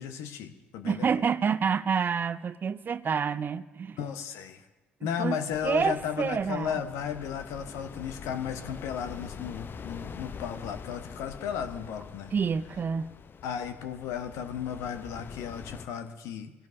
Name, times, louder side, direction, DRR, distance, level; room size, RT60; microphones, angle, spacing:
voice 1, 0.0-1.1 4.0-4.6 5.0-12.3 13.4-16.5, left 8 dB, 65° left, 1.1 m, -34 dB
voice 2, 0.8-4.0 5.2-6.8 12.3-13.1, right 6 dB, 40° right, 0.5 m, -28 dB
sound 1, 5.5-15.9, left 6 dB, 40° left, 0.7 m, -45 dB
24.0 x 17.0 x 2.7 m
figure-of-eight pair, 50°, 5 cm